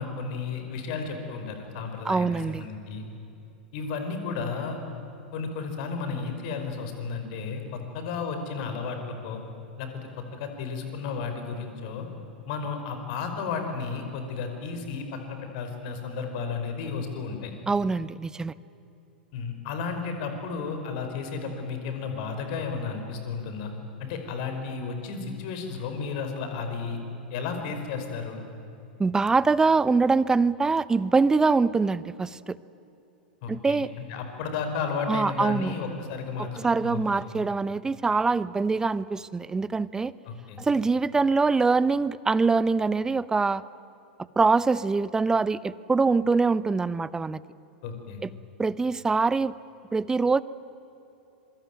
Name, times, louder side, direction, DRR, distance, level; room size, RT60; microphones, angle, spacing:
voice 1, 0.0-3.0 3.7-4.8 5.3-9.4 9.8-12.1 12.5-17.5 19.3-23.7 24.0-27.0 27.3-28.4 33.4-37.2 40.2-40.6 47.8-48.2, left 5 dB, 50° left, 6 dB, 5.0 m, -33 dB
voice 2, 2.0-2.7 17.7-18.5 29.0-32.6 33.5-33.9 35.1-35.7 36.6-40.1 40.6-43.6 44.4-47.4 48.6-49.5 49.9-50.4, right 4 dB, 10° right, 19 dB, 0.7 m, -24 dB
26.5 x 24.0 x 9.2 m, 2.9 s
figure-of-eight pair, 95°, 5 cm